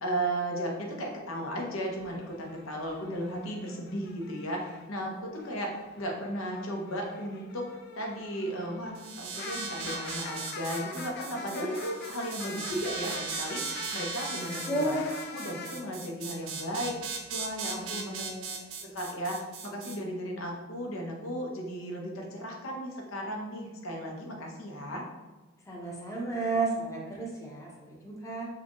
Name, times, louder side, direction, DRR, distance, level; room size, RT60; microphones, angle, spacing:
voice 1, 0.0-7.7 7.9-17.0 17.3-18.3 18.8-25.0, equal, 75° left, 0 dB, 0.8 m, -35 dB
sound 1, 2.0-4.9 5.3-15.8, left 4 dB, 50° left, 0.3 m, -44 dB
sound 2, 9.0-20.0, right 5 dB, 75° right, 0.5 m, -39 dB
voice 2, 14.7-15.0 17.9-18.6 25.7-28.5, right 2 dB, 15° left, -3 dB, 0.7 m, -33 dB
4.7 x 2.3 x 2.9 m, 1.2 s
head